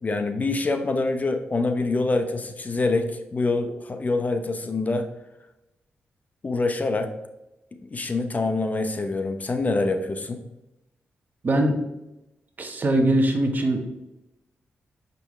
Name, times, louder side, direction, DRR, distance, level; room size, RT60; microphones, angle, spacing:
voice 1, 0.0-5.1 6.4-7.1 7.9-10.4, left 3 dB, 40° left, 6 dB, 0.7 m, -25 dB
voice 2, 11.4-11.8 12.6-13.8, right 1 dB, 45° right, 4 dB, 1.1 m, -21 dB
6.6 x 5.4 x 3.2 m, 0.94 s
cardioid pair, 70°, 4 cm